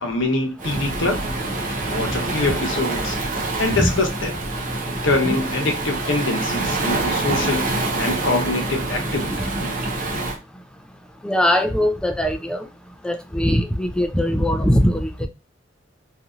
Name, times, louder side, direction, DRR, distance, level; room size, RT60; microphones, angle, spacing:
voice 1, 0.0-1.2 1.9-3.2 3.6-4.3 5.0-7.6 8.0-9.3, left 2 dB, 80° left, 0.9 m, -24 dB
Waves surf, 0.6-10.4, right 2 dB, 45° right, 0.7 m, -26 dB
voice 2, 11.2-12.6 13.0-15.3, equal, 5° left, 0.3 m, -20 dB
2.9 x 2.6 x 2.3 m
head